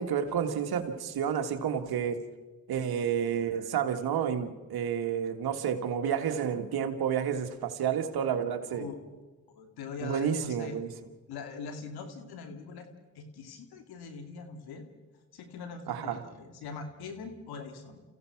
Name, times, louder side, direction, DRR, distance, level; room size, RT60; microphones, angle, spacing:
voice 1, 0.0-2.2 2.7-8.9 10.0-10.9 15.9-16.2, right 8 dB, 80° right, 1.8 m, -30 dB
voice 2, 8.6-8.9 9.5-10.8 11.3-12.9 13.1-14.9 15.3-18.0, left 5 dB, 90° left, 2.4 m, -42 dB
28.0 x 16.0 x 5.9 m
supercardioid pair, 60°, 37 cm